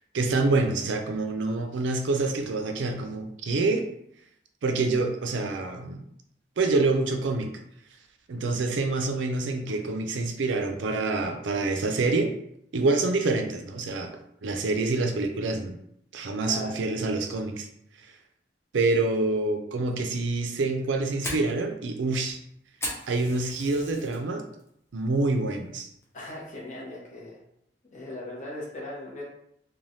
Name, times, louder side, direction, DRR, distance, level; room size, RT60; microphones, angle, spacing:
voice 1, 0.1-3.8 4.6-6.0 6.6-7.5 8.3-12.3 12.7-14.1 14.4-15.8 16.1-17.7 18.7-22.4 23.1-24.4 24.9-25.9, right 3 dB, 90° right, 4 dB, 0.4 m, -26 dB
voice 2, 16.4-16.8 26.1-27.4 27.9-29.2, left 1 dB, 40° left, -4 dB, 0.9 m, -38 dB
Fire, 20.6-24.2 24.6-25.0 25.4-25.5 26.0-26.4, left 1 dB, 15° left, 0.6 m, -37 dB
3.2 x 2.2 x 2.6 m, 0.73 s
head